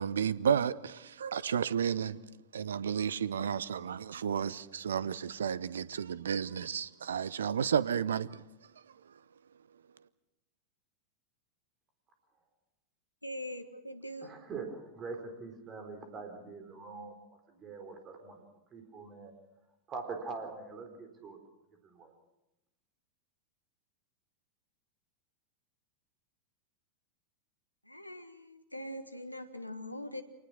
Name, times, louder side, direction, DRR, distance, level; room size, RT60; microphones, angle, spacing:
voice 1, 0.0-2.2 2.5-8.4, right 8 dB, 65° right, 0.8 m, -32 dB
voice 2, 13.2-14.3 27.9-30.2, equal, 85° left, 1.5 m, -42 dB
voice 3, 14.2-18.4 18.7-19.3 19.9-21.4 21.8-22.1, right 4 dB, 25° right, 4.0 m, -43 dB
26.5 x 19.0 x 6.3 m
figure-of-eight pair, 90°, 0 cm